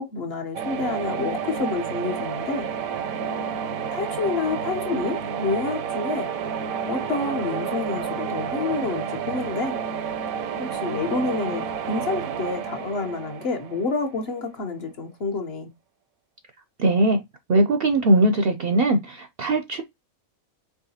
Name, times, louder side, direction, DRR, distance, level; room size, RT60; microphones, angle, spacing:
voice 1, 0.0-2.7 3.9-6.3 6.9-9.8 10.6-15.7, left 4 dB, 55° left, 0.9 m, -28 dB
sound 1, 0.5-14.4, right 7 dB, 80° right, 1.0 m, -30 dB
voice 2, 16.8-17.2 17.5-19.8, right 2 dB, 65° right, 0.6 m, -20 dB
4.7 x 3.2 x 2.7 m
omnidirectional pair, 1.5 m